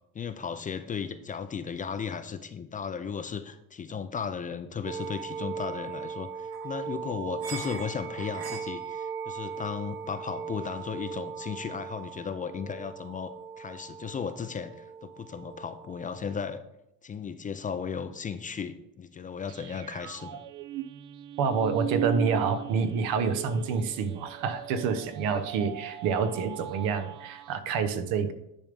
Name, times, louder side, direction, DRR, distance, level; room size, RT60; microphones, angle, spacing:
voice 1, 0.1-16.6 17.0-20.4, left 6 dB, 25° left, 10 dB, 0.4 m, -35 dB
sound 1, 4.8-16.6, right 6 dB, 40° right, 1.0 m, -39 dB
sound 2, 19.5-27.6, right 13 dB, 60° right, 0.6 m, -38 dB
voice 2, 21.4-28.3, right 5 dB, 75° right, 10 dB, 1.0 m, -28 dB
10.0 x 3.5 x 5.2 m, 0.84 s
cardioid pair, 125°, 35 cm